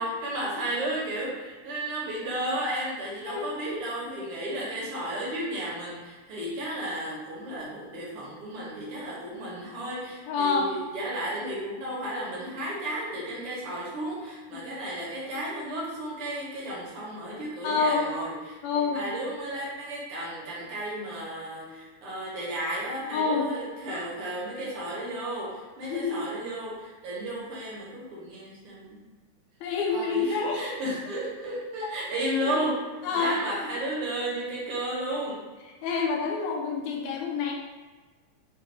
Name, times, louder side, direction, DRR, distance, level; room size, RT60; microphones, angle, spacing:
voice 1, 0.0-29.0 29.9-32.8 33.1-35.4, right 1 dB, 65° right, -5 dB, 1.5 m, -33 dB
voice 2, 10.3-10.8 14.5-14.6 17.6-18.1 18.6-19.0 23.1-23.5 25.9-26.2 29.6-30.7 32.4-32.6 33.0-33.4 35.8-37.5, left 5 dB, 75° left, 0 dB, 1.9 m, -27 dB
5.6 x 2.2 x 3.3 m, 1.3 s
omnidirectional pair, 3.5 m